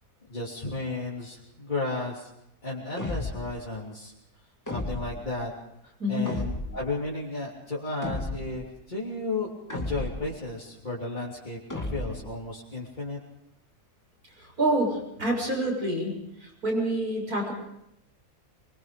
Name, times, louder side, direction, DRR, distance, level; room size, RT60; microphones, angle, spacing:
voice 1, 0.3-2.3 2.6-4.1 4.7-5.5 5.8-11.6 11.9-13.2, left 2 dB, 30° left, -6 dB, 3.3 m, -33 dB
sound 1, 3.0-3.6 4.7-5.3 6.3-6.9 8.0-8.7 9.7-10.4 11.7-12.4, left 2 dB, 10° left, 2.1 m, -34 dB
voice 2, 6.0-6.4 14.4-17.5, right 1 dB, 70° right, 0 dB, 7.5 m, -27 dB
25.0 x 23.0 x 5.2 m, 0.81 s
omnidirectional pair, 1.6 m